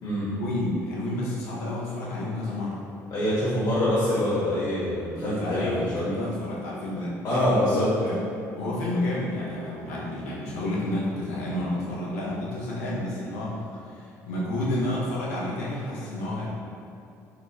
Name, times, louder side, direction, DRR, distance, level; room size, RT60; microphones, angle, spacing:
voice 1, 0.4-2.8 5.3-7.5 8.0-8.2 8.5-13.5 13.8-16.5, left 1 dB, 90° left, -6 dB, 0.7 m, -30 dB
voice 2, 3.1-6.0 7.2-7.9, left 1 dB, 50° left, -11 dB, 1.2 m, -25 dB
3.8 x 2.3 x 3.2 m, 2.6 s
hypercardioid pair, 65°, 8 cm